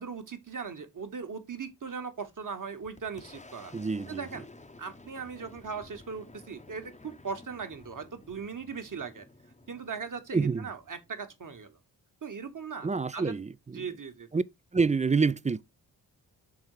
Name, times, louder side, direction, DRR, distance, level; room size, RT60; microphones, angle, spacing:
voice 1, 0.0-3.7 4.1-4.4 4.8-9.2 9.7-11.8 12.2-13.3 13.7-14.3, right 5 dB, 45° right, 1.4 m, -39 dB
Boom, 2.3-11.7, left 2 dB, 15° left, 0.8 m, -53 dB
voice 2, 3.7-4.3 10.3-10.7 12.8-13.9 14.3-14.4 14.7-15.6, right 4 dB, 15° right, 0.4 m, -27 dB
6.2 x 3.5 x 4.8 m
supercardioid pair, 40°, 45 cm